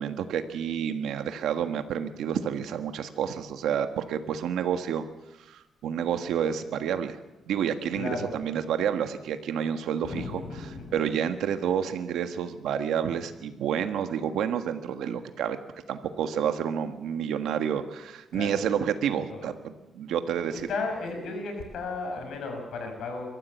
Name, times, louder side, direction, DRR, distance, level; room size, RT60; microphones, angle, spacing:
voice 1, 0.0-5.0 5.4-7.2 7.5-10.4 10.9-15.6 15.9-20.7, right 8 dB, 90° right, 8 dB, 1.5 m, -29 dB
voice 2, 7.9-8.3 10.0-11.0 18.3-18.6 19.3-19.5 20.4-23.3, left 3 dB, 75° left, 4 dB, 6.4 m, -34 dB
23.0 x 14.5 x 8.3 m, 1.0 s
cardioid pair, 120°, 0 cm